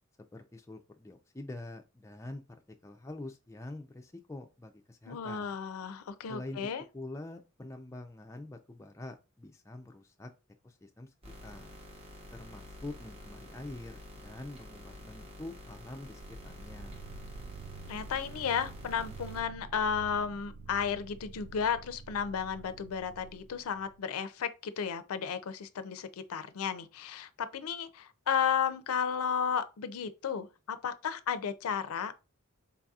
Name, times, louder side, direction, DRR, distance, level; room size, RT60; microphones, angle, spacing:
voice 1, 0.3-2.4 2.8-5.5 6.3-10.3 10.6-11.1 11.4-11.7 12.3-17.0, left 2 dB, 15° left, 0.3 m, -45 dB
voice 2, 5.1-6.8 17.9-32.2, left 7 dB, 90° left, 0.4 m, -33 dB
sound 1, 11.2-19.4, left 1 dB, 25° right, 0.8 m, -49 dB
sound 2, 16.2-24.0, right 4 dB, 75° right, 0.3 m, -48 dB
4.0 x 2.7 x 2.3 m
head